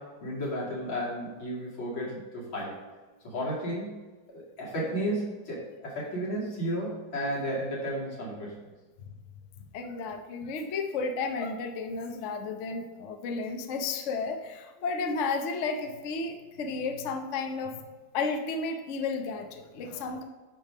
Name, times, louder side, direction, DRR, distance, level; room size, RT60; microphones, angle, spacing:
voice 1, 0.0-2.8 3.2-4.0 4.3-8.6, equal, 85° left, -5 dB, 3.2 m, -33 dB
voice 2, 9.7-17.8 18.1-20.2, left 4 dB, 60° left, 5 dB, 0.8 m, -33 dB
9.8 x 3.5 x 5.0 m, 1.3 s
omnidirectional pair, 2.1 m